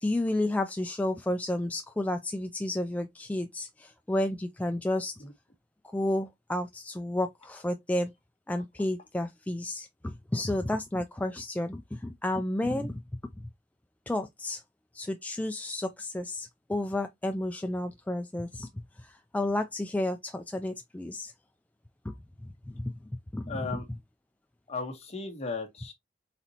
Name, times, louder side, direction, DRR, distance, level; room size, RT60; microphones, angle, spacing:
voice 1, 0.0-5.1 5.9-8.1 8.5-13.0 14.1-14.6 14.9-18.7 19.0-21.3 22.0-22.1 22.4-22.9 23.3-23.8, left 1 dB, 10° left, 0.3 m, -31 dB
voice 2, 23.5-23.9 24.7-25.9, left 4 dB, 35° left, 1.2 m, -36 dB
4.2 x 4.0 x 2.9 m
head